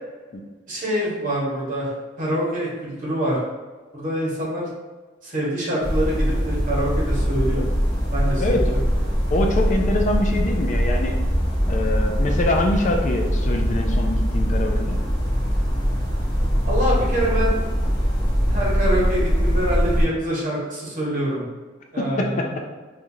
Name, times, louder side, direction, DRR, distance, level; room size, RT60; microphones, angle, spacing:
voice 1, 0.7-1.9 2.2-3.4 3.9-4.7 5.2-7.6 8.1-8.8 16.7-17.6 18.5-21.4 21.9-22.7, equal, 45° right, -5 dB, 1.2 m, -25 dB
sound 1, 5.8-20.0, equal, 20° left, 1.0 m, -22 dB
voice 2, 9.3-11.1 11.7-15.0 22.2-22.3, left 2 dB, 40° left, 3 dB, 0.3 m, -24 dB
4.3 x 2.5 x 2.7 m, 1.3 s
head